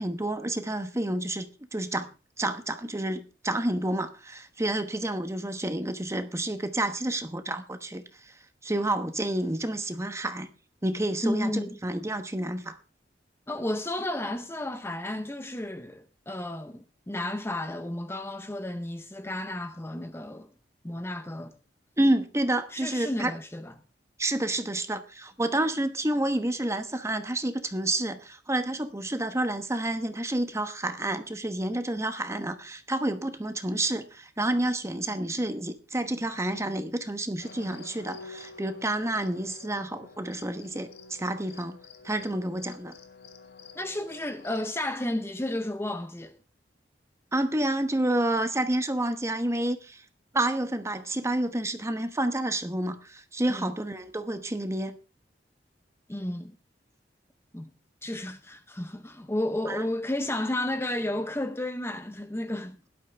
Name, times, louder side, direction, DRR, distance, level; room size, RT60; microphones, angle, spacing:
voice 1, 0.0-2.1 2.4-8.3 8.6-10.5 10.8-12.8 22.0-23.3 24.2-41.8 42.0-42.9 47.3-50.0 50.3-55.0 59.7-59.8, right 1 dB, 15° right, 1.1 m, -29 dB
voice 2, 11.2-11.8 13.5-20.5 20.8-21.5 22.7-23.7 43.8-46.4 53.5-53.7 56.1-56.6 57.5-57.7 58.0-62.8, left 1 dB, 15° left, 0.7 m, -32 dB
sound 1, 37.4-44.7, left 4 dB, 70° left, 1.6 m, -48 dB
17.0 x 12.0 x 3.4 m
head